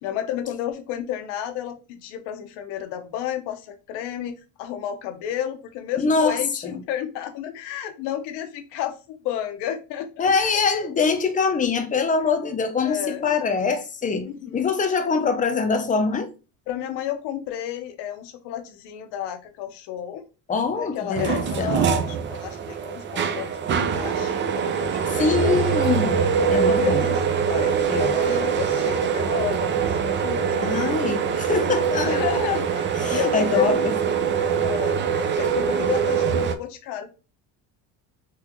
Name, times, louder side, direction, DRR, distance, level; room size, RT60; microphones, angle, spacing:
voice 1, 0.0-10.6 12.8-13.4 14.1-14.8 16.7-20.2 20.7-25.5 26.5-30.8 31.6-33.9 34.6-37.1, left 11 dB, 75° left, 0.8 m, -32 dB
voice 2, 6.0-6.8 10.2-16.3 20.5-21.7 25.1-26.2 26.5-27.0 27.9-28.1 30.6-32.5 33.0-33.8, left 4 dB, 20° left, 0.6 m, -24 dB
sound 1, 21.1-36.6, right 7 dB, 30° right, 0.4 m, -23 dB
3.8 x 2.4 x 2.9 m
cardioid pair, 120°, 40 cm